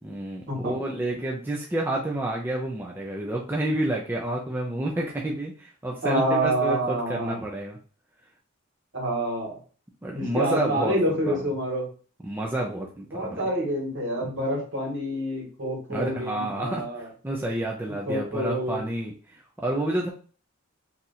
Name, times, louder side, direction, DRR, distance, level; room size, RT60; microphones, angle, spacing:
voice 1, 0.0-7.8 10.0-11.4 12.2-13.4 15.9-20.1, right 1 dB, 10° right, -2 dB, 0.4 m, -30 dB
voice 2, 6.0-7.4 8.9-9.6 10.1-11.9 13.1-17.1 17.8-18.8, right 1 dB, 60° right, -2 dB, 1.5 m, -27 dB
2.8 x 2.4 x 4.0 m, 0.39 s
head